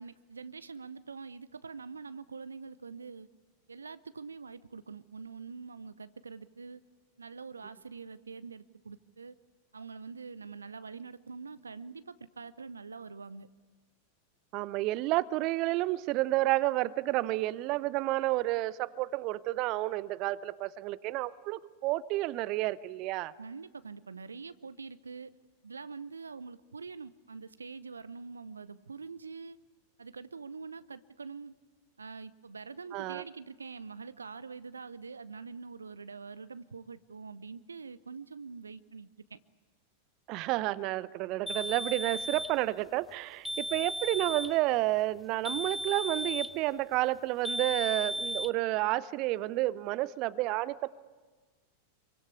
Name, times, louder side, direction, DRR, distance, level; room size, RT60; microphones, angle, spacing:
voice 1, 0.0-3.3 3.7-6.8 7.2-9.4 9.7-13.5 23.4-25.3 25.6-29.6 30.0-31.6 32.0-39.4, right 5 dB, 75° right, 16 dB, 0.8 m, -45 dB
voice 2, 14.5-23.3 32.9-33.2 40.3-50.9, right 17 dB, 40° right, 18 dB, 0.7 m, -30 dB
sound 1, 41.5-42.6 43.4-44.6 45.4-46.6 47.4-48.5, equal, 5° left, 1.2 m, -35 dB
26.5 x 24.0 x 8.5 m, 1.4 s
figure-of-eight pair, 90°, 0 cm